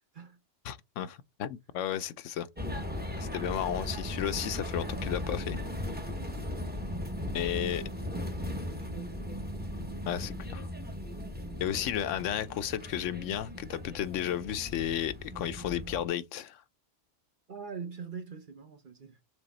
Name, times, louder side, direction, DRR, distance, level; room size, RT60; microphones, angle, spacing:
voice 1, 0.6-2.5 3.2-5.6 7.3-7.8 10.1-10.7 11.6-16.6, left 10 dB, 85° left, 1.0 m, -33 dB
sound 1, 2.6-16.1, left 1 dB, 10° right, 0.8 m, -37 dB
voice 2, 7.1-9.2 17.5-19.2, right 5 dB, 45° right, 1.0 m, -45 dB
6.9 x 3.4 x 4.1 m
omnidirectional pair, 1.2 m